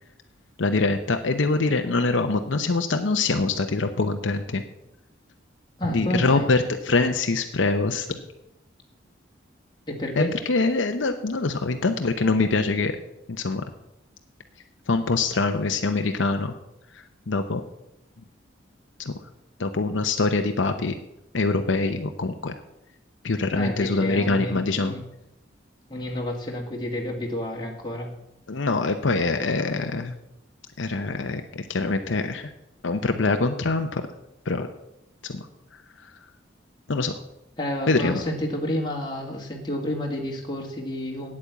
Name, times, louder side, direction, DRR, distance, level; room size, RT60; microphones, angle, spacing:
voice 1, 0.6-4.6 5.9-8.2 10.2-12.9 13.3-13.6 14.9-16.5 16.9-17.6 19.0-19.1 19.6-20.9 21.3-22.5 23.2-24.9 28.5-30.1 30.8-32.5 32.8-34.0 34.4-34.7 35.2-35.5 35.7-36.1 36.9-37.1 37.9-38.2, left 3 dB, 75° left, 6 dB, 0.8 m, -24 dB
voice 2, 5.8-6.5 9.9-10.3 23.5-25.0 25.9-28.1 37.6-41.4, left 1 dB, 20° left, -1 dB, 2.0 m, -30 dB
8.7 x 8.6 x 8.1 m, 0.88 s
head